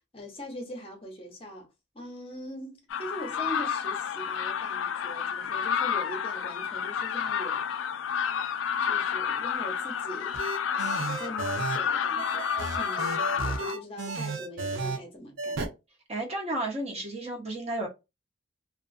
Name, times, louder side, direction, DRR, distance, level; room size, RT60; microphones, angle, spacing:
voice 1, 0.1-1.7 1.9-7.7 8.8-10.4 10.7-15.6, equal, 25° left, 0.7 m, -41 dB
sound 1, 2.9-13.7, left 7 dB, 70° left, 0.3 m, -30 dB
sound 2, 10.3-11.8 12.2-15.0 15.4-15.7, right 3 dB, 70° right, 0.5 m, -33 dB
voice 2, 16.1-17.9, right 1 dB, 30° right, 0.7 m, -32 dB
2.4 x 2.3 x 2.4 m
head